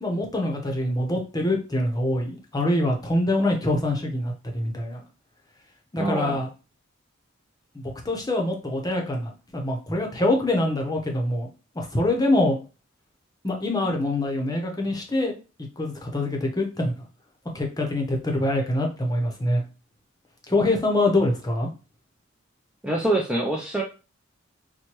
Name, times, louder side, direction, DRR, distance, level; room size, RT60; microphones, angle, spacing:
voice 1, 0.0-5.0 5.9-6.5 7.7-11.5 11.7-12.6 13.4-15.4 15.8-16.9 17.5-19.6 20.5-21.7, left 1 dB, 20° left, 1 dB, 0.7 m, -25 dB
voice 2, 6.0-6.4 22.8-23.8, right 2 dB, 5° right, -1 dB, 0.4 m, -25 dB
4.4 x 2.2 x 2.9 m, 0.33 s
head